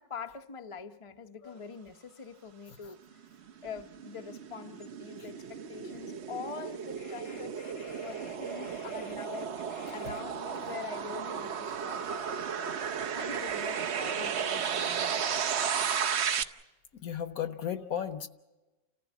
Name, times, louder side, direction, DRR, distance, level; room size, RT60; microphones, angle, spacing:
voice 1, 0.0-3.2 3.6-7.5 8.0-9.5 9.9-12.2 12.5-12.7 13.1-15.7, left 6 dB, 30° left, 6 dB, 0.6 m, -44 dB
sound 1, 3.2-16.4, right 7 dB, 50° right, 0.9 m, -34 dB
voice 2, 7.1-9.1 9.7-10.2 16.3-16.4 16.9-18.3, left 9 dB, 60° left, 11 dB, 1.3 m, -39 dB
30.0 x 15.0 x 7.3 m, 1.1 s
omnidirectional pair, 1.9 m